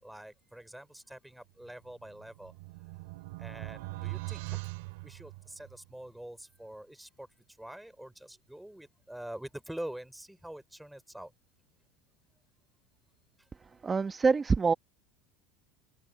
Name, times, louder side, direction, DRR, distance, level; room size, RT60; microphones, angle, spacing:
voice 1, 0.0-2.5 3.4-4.6 5.0-7.3 7.6-11.3 13.4-13.5, right 1 dB, 5° right, 3.3 m, -45 dB
sound 1, 1.9-5.8, right 24 dB, 75° right, 2.2 m, -41 dB
voice 2, 13.8-14.7, right 5 dB, 20° right, 1.2 m, -25 dB
open air
supercardioid pair, 110°, 0 cm